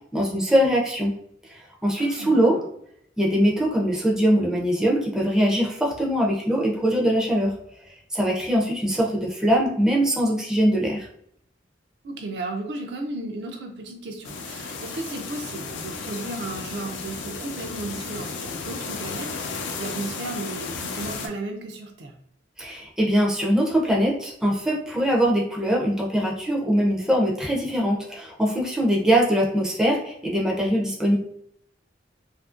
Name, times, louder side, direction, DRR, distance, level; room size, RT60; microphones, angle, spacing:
voice 1, 0.1-1.1 1.4-2.6 3.2-7.5 7.9-11.1 22.6-31.2, equal, 5° right, -3 dB, 0.4 m, -22 dB
voice 2, 2.0-2.6 12.0-22.1, right 2 dB, 65° right, 2 dB, 0.4 m, -34 dB
sound 1, 14.2-21.3, left 4 dB, 80° left, 0.4 m, -34 dB
2.7 x 2.5 x 2.4 m, 0.71 s
head